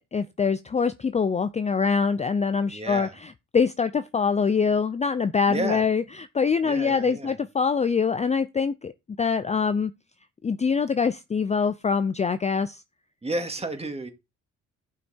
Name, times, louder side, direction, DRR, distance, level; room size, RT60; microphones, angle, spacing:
voice 1, 0.1-8.9 9.2-9.9 10.4-12.8, left 5 dB, 20° left, 0.5 m, -24 dB
voice 2, 2.7-3.2 5.5-5.9 6.6-7.3 13.2-14.1, right 2 dB, 20° right, 2.3 m, -31 dB
11.5 x 5.8 x 4.4 m
cardioid pair, 90°, 30 cm